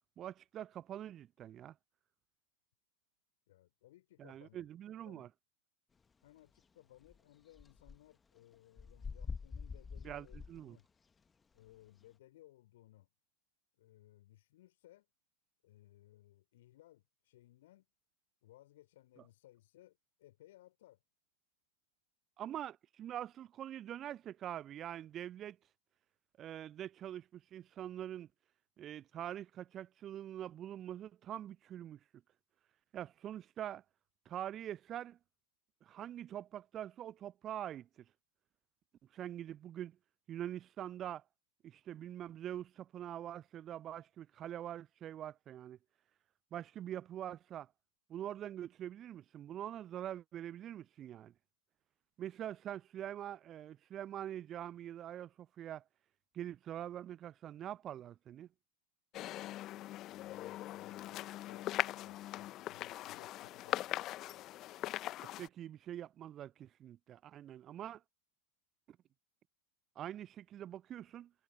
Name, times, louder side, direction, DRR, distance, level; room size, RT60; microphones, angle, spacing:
voice 1, 0.2-1.7 4.2-5.3 10.0-10.8 22.4-25.6 26.4-28.3 28.8-32.0 32.9-33.8 34.3-35.2 35.8-37.9 39.1-40.0 40.3-41.2 41.6-45.8 46.5-47.7 48.1-51.3 52.2-55.8 56.3-58.5 65.4-68.0 70.0-71.3, right 11 dB, 30° right, 0.6 m, -44 dB
voice 2, 3.5-4.7 5.1-5.3 6.2-10.9 11.5-13.1 13.8-15.1 15.6-17.9 18.4-21.0 60.1-63.8, left 15 dB, 55° left, 3.7 m, -62 dB
sound 1, 7.0-7.2 7.5-8.0 8.4-10.6 11.7-11.8, left 5 dB, 15° left, 1.9 m, -45 dB
sound 2, 59.1-65.5, left 14 dB, 35° left, 1.3 m, -41 dB
figure-of-eight pair, 90°, 0 cm